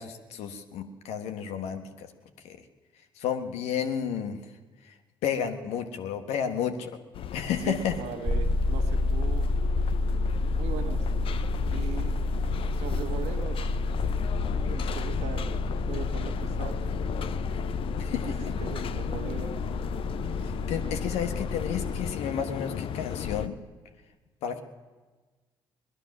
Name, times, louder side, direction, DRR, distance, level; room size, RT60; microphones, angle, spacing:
voice 1, 0.0-2.1 2.4-2.6 3.2-4.4 5.2-6.9 7.3-7.9 18.0-18.3 20.7-23.6 24.4-24.6, left 8 dB, 70° left, 7 dB, 1.2 m, -31 dB
sound 1, 7.1-23.5, left 9 dB, 55° left, 0.6 m, -35 dB
voice 2, 7.6-9.5 10.6-11.1 11.7-12.2 12.7-13.7 14.4-15.5 15.9-16.7 18.6-19.6, right 8 dB, 70° right, 6 dB, 1.7 m, -39 dB
sound 2, 8.2-22.1, left 2 dB, 5° left, 0.8 m, -30 dB
20.0 x 11.5 x 6.0 m, 1.3 s
hypercardioid pair, 55°, 11 cm